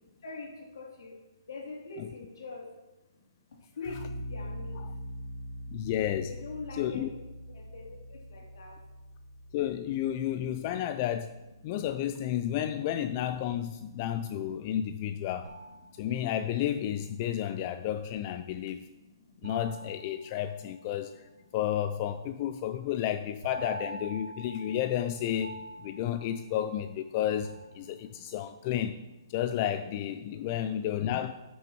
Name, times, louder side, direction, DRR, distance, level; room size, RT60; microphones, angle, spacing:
voice 1, 0.2-1.1 1.5-2.7 3.8-4.8 6.3-7.1 7.5-8.8, left 3 dB, 70° left, -1 dB, 2.9 m, -42 dB
sound 1, 3.8-12.7, equal, 10° right, 3.9 m, -44 dB
voice 2, 5.7-6.3 6.8-7.1 9.5-11.3 11.6-15.5 16.0-18.8 19.4-25.6 25.8-29.0 29.3-31.3, left 11 dB, 30° left, 10 dB, 0.4 m, -31 dB
sound 2, 15.4-16.6 19.4-21.1 23.4-27.0 27.4-28.4, right 2 dB, 75° right, 1.0 m, -45 dB
12.0 x 6.2 x 4.6 m, 1.1 s
hypercardioid pair, 160°, 2 cm